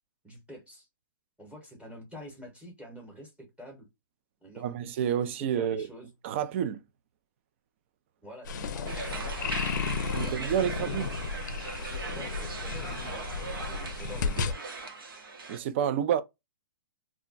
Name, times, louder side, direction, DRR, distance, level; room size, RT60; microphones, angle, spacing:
voice 1, 0.2-0.9 1.4-3.3 3.6-3.9 4.4-4.8 5.4-6.1 8.2-9.6 10.2-10.9 11.8-14.7, equal, 5° right, 0.9 m, -47 dB
voice 2, 4.6-5.9 6.2-6.8 10.1-11.1 15.5-16.2, right 9 dB, 35° right, 0.3 m, -29 dB
sound 1, 8.4-14.5, left 5 dB, 55° left, 0.5 m, -33 dB
sound 2, 8.9-15.6, right 4 dB, 75° right, 1.0 m, -40 dB
2.3 x 2.1 x 3.8 m
hypercardioid pair, 155°, 12 cm